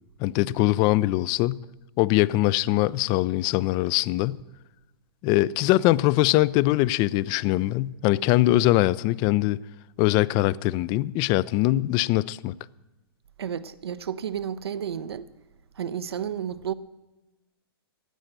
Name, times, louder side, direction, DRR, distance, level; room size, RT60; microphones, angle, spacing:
voice 1, 0.2-1.6 2.0-4.4 5.2-9.6 10.0-12.5, left 17 dB, 35° left, 0.4 m, -22 dB
voice 2, 13.4-15.3 15.8-16.7, right 8 dB, 80° right, 0.7 m, -31 dB
15.5 x 9.7 x 6.5 m
hypercardioid pair, 120°, 13 cm